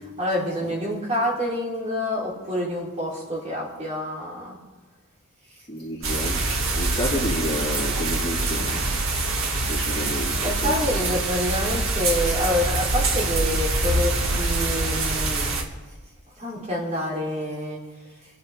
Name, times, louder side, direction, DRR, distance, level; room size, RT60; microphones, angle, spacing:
voice 1, 0.2-4.6 10.4-15.5 16.4-17.8, left 1 dB, 30° right, -4 dB, 3.0 m, -27 dB
voice 2, 5.7-6.4 6.7-8.8 9.7-10.7, left 1 dB, 25° left, -6 dB, 3.1 m, -30 dB
sound 1, 6.0-15.6, right 2 dB, 75° right, 1.6 m, -25 dB
28.0 x 9.6 x 3.4 m, 1.3 s
head